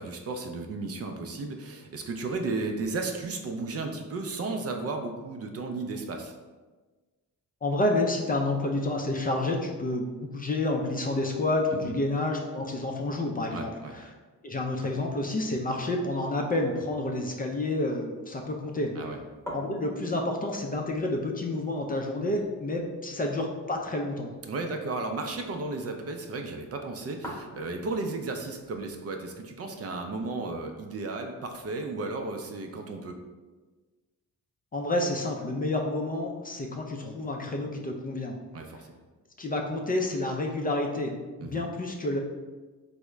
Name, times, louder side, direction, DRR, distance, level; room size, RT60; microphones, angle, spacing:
voice 1, 0.0-6.3 11.7-11.9 13.5-13.9 19.0-19.2 24.5-33.2 38.5-38.9 41.4-41.6, right 3 dB, 45° right, 4 dB, 0.4 m, -34 dB
voice 2, 7.6-14.1 14.4-18.9 19.5-24.3 34.7-38.4 39.4-42.2, left 2 dB, 25° left, 1 dB, 0.4 m, -29 dB
sound 1, 16.8-32.6, equal, 5° left, 0.9 m, -49 dB
3.5 x 2.0 x 3.2 m, 1.3 s
cardioid pair, 85°, 35 cm